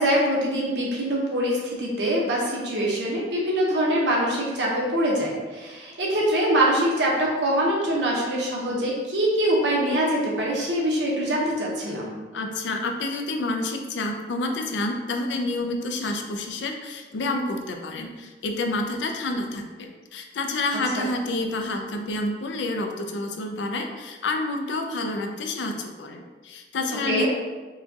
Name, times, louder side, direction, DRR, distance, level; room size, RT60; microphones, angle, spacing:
voice 1, 0.0-12.2 20.9-21.1 27.1-27.3, right 1 dB, 80° right, -3 dB, 0.9 m, -24 dB
voice 2, 12.3-27.3, left 2 dB, 85° left, 4 dB, 0.4 m, -29 dB
4.8 x 2.3 x 2.7 m, 1.3 s
head